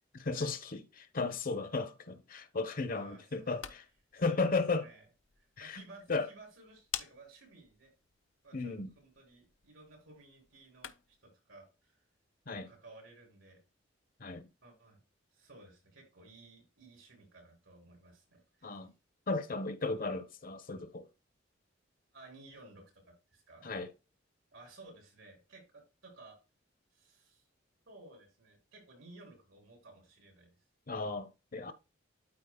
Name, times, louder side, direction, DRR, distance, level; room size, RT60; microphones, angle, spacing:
voice 1, 0.1-3.8 4.1-4.9 5.6-5.8 6.1-6.3 8.5-8.9 12.5-12.7 14.2-14.5 18.6-18.9 19.3-21.1 23.6-23.9 30.9-31.7, left 3 dB, 45° left, 0.8 m, -35 dB
voice 2, 2.9-3.6 4.1-4.5 4.8-5.1 5.4-7.9 8.4-12.0 12.6-13.6 14.6-15.0 15.3-18.9 22.1-23.7 24.5-26.4 26.9-27.4 27.9-30.5, right 2 dB, 85° right, 3.8 m, -56 dB
light switch, 3.3-11.3, left 10 dB, 80° left, 0.7 m, -50 dB
12.5 x 4.3 x 2.2 m
head